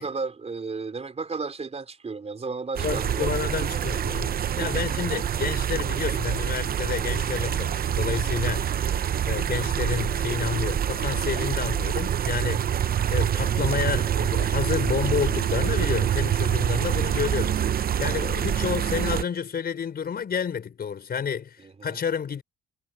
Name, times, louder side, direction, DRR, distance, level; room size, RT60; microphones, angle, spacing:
voice 1, 0.0-3.4 3.7-3.9 4.6-5.2 7.5-7.7 16.9-17.3 21.6-22.0, right 4 dB, 30° right, 4.0 m, -35 dB
voice 2, 2.8-9.0 9.2-22.4, left 7 dB, 50° left, 5.5 m, -30 dB
sound 1, 2.8-19.2, right 9 dB, 50° right, 0.8 m, -26 dB
cardioid pair, 90°, 20 cm